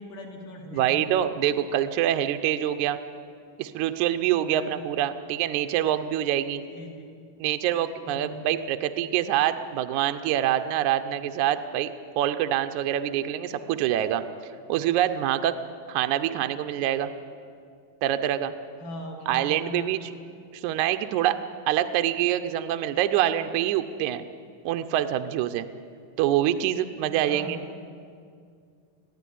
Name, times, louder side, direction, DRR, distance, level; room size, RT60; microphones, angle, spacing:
voice 1, 0.0-1.0 4.5-4.8 6.7-7.1 8.1-8.5 18.8-20.0 27.2-27.6, left 1 dB, 70° left, 0 dB, 4.4 m, -39 dB
voice 2, 0.7-3.0 3.6-6.6 7.4-14.2 14.7-15.5 15.9-17.1 18.0-18.5 19.3-20.1 20.5-21.4 21.7-24.2 24.7-25.7 26.2-27.6, right 11 dB, 75° right, 8 dB, 1.9 m, -25 dB
21.5 x 15.0 x 10.0 m, 2.3 s
omnidirectional pair, 3.9 m